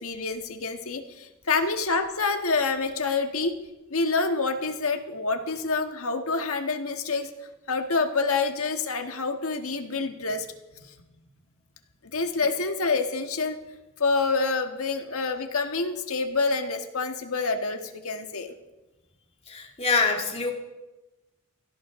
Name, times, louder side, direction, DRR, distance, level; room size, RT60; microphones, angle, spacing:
voice 1, 0.0-3.5 3.9-7.3 7.7-10.5 10.7-10.9 12.0-13.6 14.0-18.5, left 4 dB, 85° left, 6 dB, 1.5 m, -27 dB
voice 2, 19.5-20.5, left 4 dB, 30° left, 2 dB, 2.0 m, -25 dB
19.0 x 16.0 x 3.7 m, 1.1 s
head